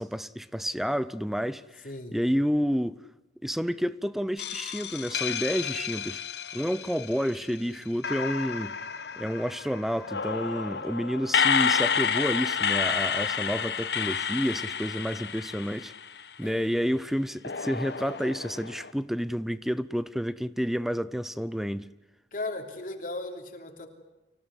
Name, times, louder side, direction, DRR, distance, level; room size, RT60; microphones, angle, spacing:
voice 1, 0.0-1.8 2.1-3.0 3.4-6.2 6.5-8.7 9.2-15.9 16.4-21.9, equal, ahead, 0.7 m, -30 dB
voice 2, 1.8-2.2 16.4-17.0 22.3-23.9, left 2 dB, 50° left, 3.3 m, -37 dB
sound 1, 4.4-7.6 8.0-16.4 17.4-18.9, left 7 dB, 70° left, 1.2 m, -30 dB
26.0 x 17.0 x 9.9 m
head